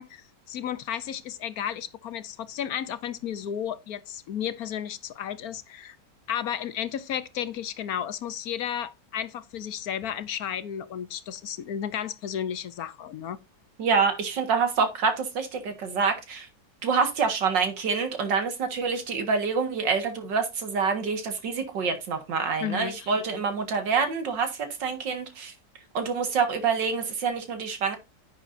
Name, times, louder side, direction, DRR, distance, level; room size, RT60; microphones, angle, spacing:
voice 1, 0.0-6.0 6.3-13.4 22.6-23.1, left 9 dB, 60° left, 1.2 m, -33 dB
voice 2, 13.8-16.5 16.8-25.5 25.9-28.0, right 5 dB, 80° right, 2.4 m, -26 dB
10.5 x 8.5 x 2.7 m
omnidirectional pair, 1.9 m